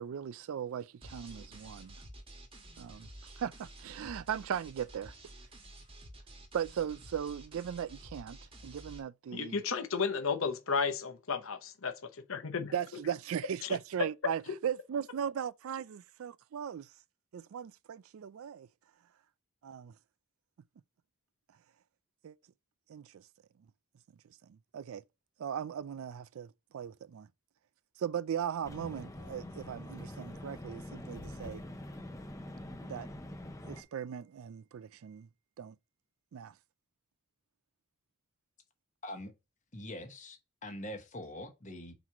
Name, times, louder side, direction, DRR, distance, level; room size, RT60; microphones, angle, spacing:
voice 1, 0.0-2.0 2.8-5.1 6.5-9.6 12.7-16.9 17.3-18.7 19.6-19.9 22.2-22.4 22.9-23.2 24.5-25.0 25.4-27.3 28.0-31.6 32.9-33.1 33.6-35.3 35.6-35.8 36.3-36.5, right 8 dB, 70° right, 0.3 m, -38 dB
sound 1, 1.0-9.0, right 1 dB, 25° right, 1.2 m, -51 dB
voice 2, 9.3-12.7 13.6-13.8, left 5 dB, 70° left, 0.8 m, -33 dB
sound 2, 28.6-33.8, left 1 dB, 15° left, 0.6 m, -45 dB
voice 3, 39.0-39.3 39.7-41.9, left 1 dB, 35° left, 1.1 m, -43 dB
4.6 x 4.1 x 5.8 m
head